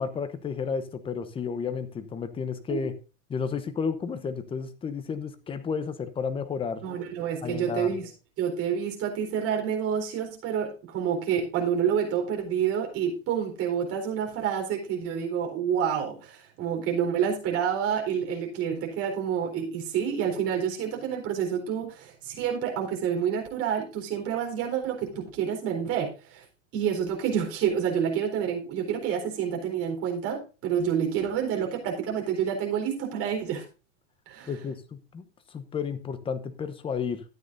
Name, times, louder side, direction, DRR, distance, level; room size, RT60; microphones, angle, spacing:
voice 1, 0.0-2.9 3.3-6.8 7.4-8.0 34.5-35.2 35.5-37.2, left 6 dB, 15° left, 11 dB, 0.9 m, -32 dB
voice 2, 6.8-8.1 8.4-26.4 26.7-33.6 34.3-34.5, right 8 dB, 40° right, 2 dB, 4.1 m, -28 dB
13.0 x 9.2 x 2.6 m, 0.33 s
supercardioid pair, 130°, 37 cm